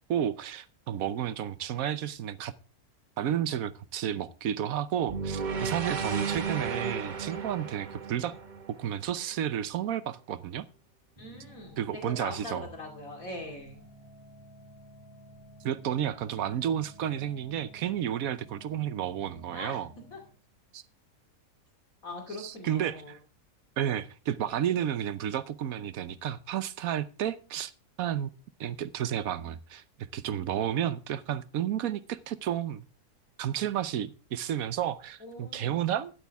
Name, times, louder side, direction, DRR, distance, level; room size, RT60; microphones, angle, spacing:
voice 1, 0.1-2.5 3.2-8.3 8.7-10.7 11.8-12.7 15.6-19.9 20.7-20.8 22.4-23.2 23.8-27.7 28.0-28.3 28.6-32.8 33.4-36.1, right 10 dB, 75° right, 1.2 m, -31 dB
sound 1, 5.1-9.3, right 5 dB, 40° right, 0.9 m, -34 dB
voice 2, 11.2-13.8 19.5-19.8 20.1-20.2 22.0-23.1 35.2-35.9, left 2 dB, 70° left, 2.9 m, -41 dB
sound 2, 11.2-20.4, right 1 dB, 20° right, 3.6 m, -53 dB
12.5 x 10.5 x 3.5 m
omnidirectional pair, 1.5 m